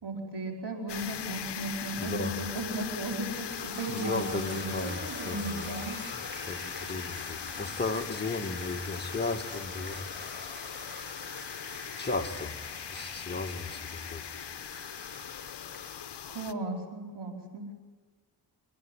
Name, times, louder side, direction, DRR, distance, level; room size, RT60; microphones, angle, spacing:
voice 1, 0.0-6.0 16.3-17.7, right 2 dB, 65° right, 2 dB, 4.7 m, -36 dB
sound 1, 0.9-16.5, left 9 dB, 70° left, 1.0 m, -40 dB
voice 2, 2.0-2.4 3.9-10.7 12.0-12.6 12.9-14.2, left 3 dB, 25° left, 3 dB, 2.1 m, -35 dB
sound 2, 3.3-16.5, right 1 dB, 25° right, 3.5 m, -45 dB
28.5 x 10.5 x 10.0 m, 1.3 s
cardioid pair, 50°, 43 cm